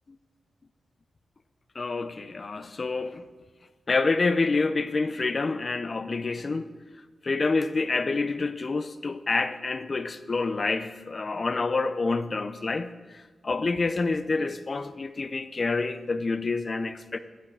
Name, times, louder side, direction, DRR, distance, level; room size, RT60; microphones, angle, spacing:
voice 1, 1.7-3.2 3.9-6.7 7.2-17.2, left 3 dB, 50° left, 0.7 m, -27 dB
12.5 x 11.5 x 4.8 m
cardioid pair, 50°, 0 cm